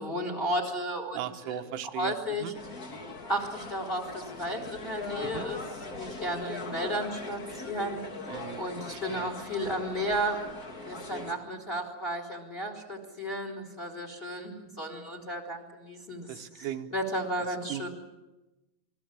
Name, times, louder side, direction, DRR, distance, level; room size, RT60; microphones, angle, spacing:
voice 1, 0.0-2.5 3.3-8.0 8.6-10.4 10.8-17.9, equal, 15° left, 5 dB, 3.3 m, -34 dB
voice 2, 1.1-2.1 2.4-2.5 5.2-5.5 8.3-8.6 8.9-9.3 16.3-16.9 17.7-17.9, right 11 dB, 90° right, 6 dB, 3.7 m, -37 dB
sound 1, 2.5-11.3, left 3 dB, 80° left, 0.8 m, -40 dB
28.0 x 22.5 x 7.5 m, 1.0 s
omnidirectional pair, 5.4 m